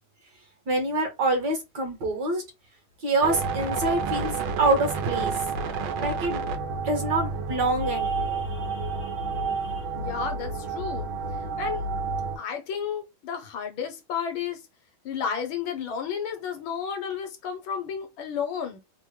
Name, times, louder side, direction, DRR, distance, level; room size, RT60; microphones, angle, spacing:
voice 1, 0.7-2.4 3.0-5.3 6.0-6.4 6.8-9.1, right 2 dB, 60° right, 1.4 m, -26 dB
sound 1, 3.2-12.4, right 4 dB, 90° right, 1.5 m, -30 dB
voice 2, 10.0-11.1 11.6-11.8 12.4-14.6 15.0-18.8, left 7 dB, 75° left, 1.5 m, -32 dB
3.6 x 2.0 x 3.0 m
omnidirectional pair, 2.2 m